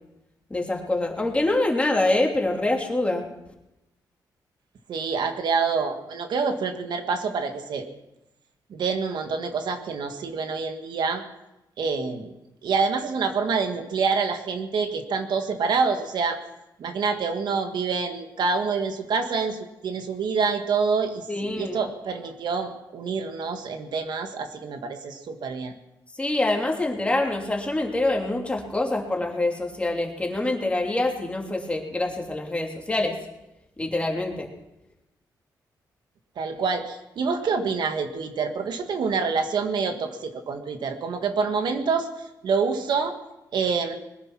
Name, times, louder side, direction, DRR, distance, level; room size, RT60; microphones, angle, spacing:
voice 1, 0.5-3.3 21.3-21.8 26.2-33.2 33.8-34.5, left 2 dB, 15° left, 1 dB, 2.9 m, -25 dB
voice 2, 4.9-7.9 8.7-11.2 11.8-12.3 12.6-16.4 16.8-25.7 36.4-42.1 42.4-43.2 43.5-44.0, right 5 dB, 70° right, 6 dB, 1.7 m, -26 dB
21.0 x 10.5 x 6.1 m, 0.92 s
cardioid pair, 95°, 8 cm